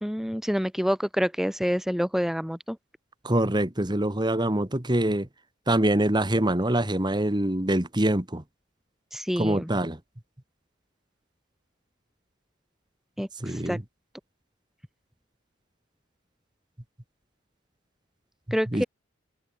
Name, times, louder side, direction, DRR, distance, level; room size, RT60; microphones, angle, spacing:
voice 1, 0.0-2.8 9.1-9.7 13.2-13.8 18.5-18.8, equal, ahead, 2.5 m, -27 dB
voice 2, 3.2-5.3 5.7-8.4 9.4-10.0 13.4-13.8 18.7-18.8, right 1 dB, 20° right, 1.5 m, -24 dB
head